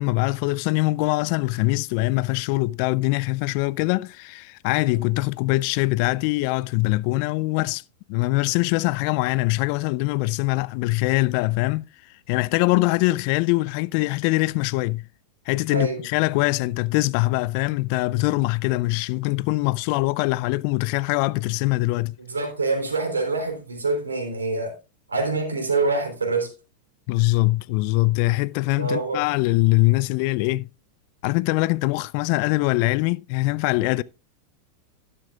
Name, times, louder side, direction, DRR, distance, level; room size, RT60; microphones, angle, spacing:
voice 1, 0.0-7.8 8.1-11.9 12.3-15.0 15.5-22.2 27.1-30.7 31.2-34.0, left 21 dB, 55° left, 0.4 m, -23 dB
voice 2, 15.7-16.0 22.3-24.8 25.1-26.5 28.8-29.2, right 3 dB, 90° right, 3.6 m, -25 dB
12.0 x 12.0 x 2.4 m
hypercardioid pair, 95°, 0 cm